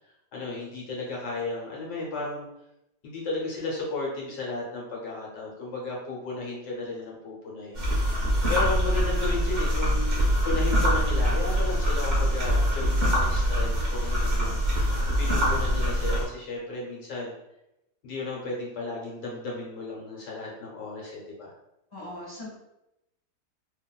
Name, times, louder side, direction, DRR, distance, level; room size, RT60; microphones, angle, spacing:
voice 1, 0.3-2.5 3.0-17.3 18.0-21.5, left 3 dB, 80° left, -3 dB, 1.4 m, -34 dB
sound 1, 7.7-16.2, equal, 45° right, 0.6 m, -24 dB
voice 2, 21.9-22.5, left 1 dB, 15° left, -9 dB, 1.1 m, -39 dB
2.9 x 2.4 x 2.2 m, 0.87 s
omnidirectional pair, 1.8 m